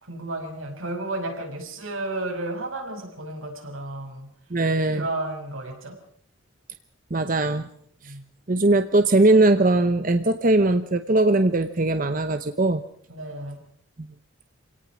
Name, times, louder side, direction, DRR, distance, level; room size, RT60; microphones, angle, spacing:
voice 1, 0.1-4.3 4.9-6.0 8.0-8.2 13.1-13.6, right 2 dB, 80° right, 3 dB, 6.0 m, -32 dB
voice 2, 4.5-5.1 7.1-7.7 8.0-8.1 8.5-12.8 14.0-14.1, right 2 dB, 40° right, 9 dB, 0.8 m, -20 dB
27.0 x 18.0 x 6.2 m, 0.64 s
head